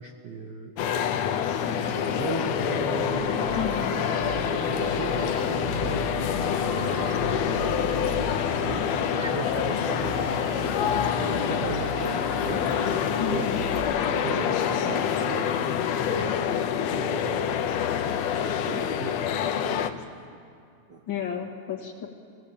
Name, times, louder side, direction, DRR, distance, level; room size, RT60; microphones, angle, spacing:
voice 1, 0.0-3.8 4.5-13.5 14.1-15.7 16.0-20.3 20.9-21.0, right 4 dB, 80° right, 4 dB, 0.9 m, -39 dB
sound 1, 0.8-19.9, left 8 dB, 70° left, 1.9 m, -27 dB
sound 2, 1.6-15.7, right 1 dB, 50° right, 3.0 m, -39 dB
sound 3, 2.8-13.8, right 2 dB, 30° right, 3.0 m, -37 dB
voice 2, 3.5-4.0 13.2-13.6 21.1-22.1, left 9 dB, 45° left, 0 dB, 2.1 m, -32 dB
21.5 x 17.0 x 8.6 m, 2.4 s
omnidirectional pair, 3.4 m